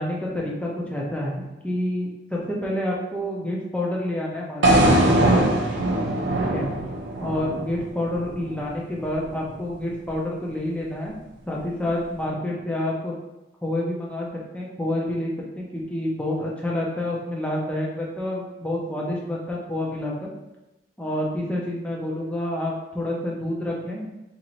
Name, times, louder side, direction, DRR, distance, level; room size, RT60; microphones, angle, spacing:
voice 1, 0.0-5.5 6.4-6.7 7.2-11.1 11.5-13.1 13.6-14.3 14.5-20.1 21.0-24.1, left 1 dB, 5° left, -3 dB, 0.6 m, -28 dB
sound 1, 4.6-8.7, right 1 dB, 65° right, 0.5 m, -21 dB
3.0 x 2.6 x 4.1 m, 0.98 s
head